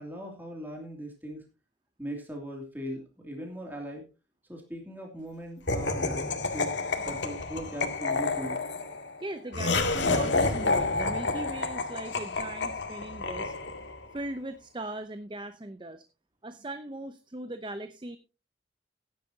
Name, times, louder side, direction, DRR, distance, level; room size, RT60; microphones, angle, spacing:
voice 1, 0.0-1.4 2.0-4.1 4.5-6.3 6.5-8.6, right 1 dB, 10° right, 1 dB, 2.6 m, -39 dB
Laughter, 5.7-14.0, left 3 dB, 80° left, 2.0 m, -29 dB
voice 2, 9.2-13.5 14.1-16.0 16.4-18.2, right 1 dB, 25° right, 10 dB, 0.7 m, -39 dB
16.0 x 10.5 x 2.8 m, 0.29 s
head